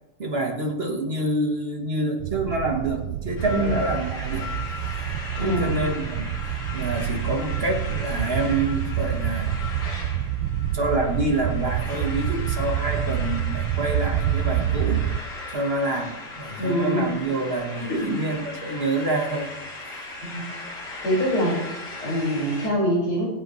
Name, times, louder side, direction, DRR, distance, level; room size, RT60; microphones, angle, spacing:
voice 1, 0.2-4.5 5.4-9.5 10.7-15.0 15.5-19.5, right 2 dB, 35° right, 2 dB, 1.2 m, -27 dB
sound 1, 2.2-15.2, right 11 dB, 85° right, 1.5 m, -27 dB
sound 2, 3.4-22.7, left 3 dB, 85° left, 2.9 m, -38 dB
voice 2, 3.5-3.8 5.4-5.8 16.6-17.1 20.2-20.5 21.0-23.3, equal, 50° left, -5 dB, 5.7 m, -24 dB
21.5 x 8.1 x 3.1 m, 0.99 s
omnidirectional pair, 2.3 m